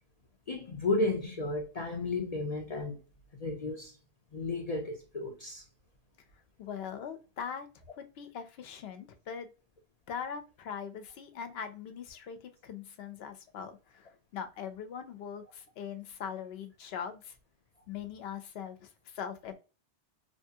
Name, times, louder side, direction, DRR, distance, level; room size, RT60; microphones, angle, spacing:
voice 1, 0.5-3.0 3.3-4.0 4.3-5.6, left 2 dB, 55° left, 0.4 m, -33 dB
voice 2, 6.6-7.7 8.0-9.5 10.1-17.3 17.9-19.5, left 7 dB, 70° left, 0.8 m, -41 dB
2.8 x 2.3 x 2.7 m
omnidirectional pair, 1.2 m